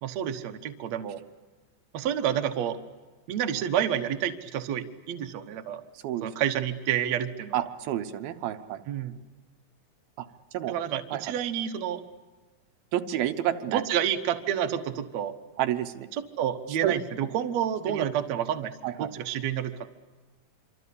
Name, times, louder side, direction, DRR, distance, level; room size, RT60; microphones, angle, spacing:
voice 1, 0.0-1.2 1.9-2.8 3.3-5.8 6.2-7.6 8.9-9.2 10.7-12.0 13.7-15.4 16.1-19.9, right 9 dB, 60° right, 6 dB, 1.9 m, -29 dB
voice 2, 7.5-8.8 10.2-10.3 10.5-10.7 11.1-11.3 12.9-13.8 15.6-16.1 16.8-17.0 17.9-18.1 18.8-19.1, right 12 dB, 80° right, 8 dB, 2.8 m, -29 dB
26.0 x 25.5 x 8.5 m, 1.3 s
omnidirectional pair, 4.4 m